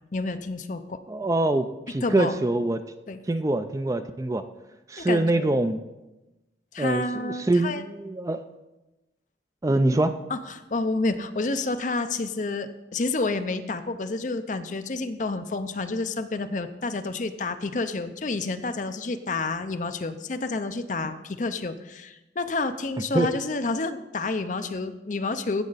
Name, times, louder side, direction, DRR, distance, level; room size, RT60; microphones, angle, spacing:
voice 1, 0.1-1.0 2.0-2.3 3.1-3.2 5.0-5.6 6.7-7.9 10.3-25.6, left 3 dB, 45° left, 9 dB, 0.5 m, -29 dB
voice 2, 1.1-2.8 3.3-4.4 4.9-5.8 6.8-8.4 9.6-10.1 23.1-23.3, right 2 dB, 20° right, 9 dB, 0.3 m, -24 dB
16.5 x 6.3 x 4.0 m, 1.0 s
head